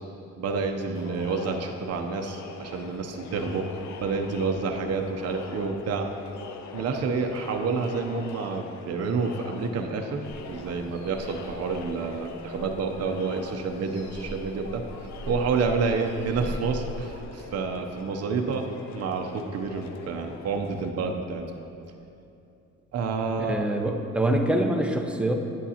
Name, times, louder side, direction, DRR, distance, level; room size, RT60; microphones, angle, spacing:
voice 1, 0.4-3.7 4.0-6.1 6.7-14.8 15.3-18.7 18.9-21.5 22.9-23.6, right 4 dB, 55° right, 4 dB, 0.7 m, -29 dB
Crowd, 0.9-20.9, left 5 dB, 70° left, 0.6 m, -43 dB
sound 1, 10.2-17.2, right 1 dB, 85° left, 2.0 m, -41 dB
voice 2, 23.4-25.3, right 1 dB, 5° right, 3 dB, 0.7 m, -25 dB
9.4 x 8.3 x 2.8 m, 2.7 s
cardioid pair, 90°, 30 cm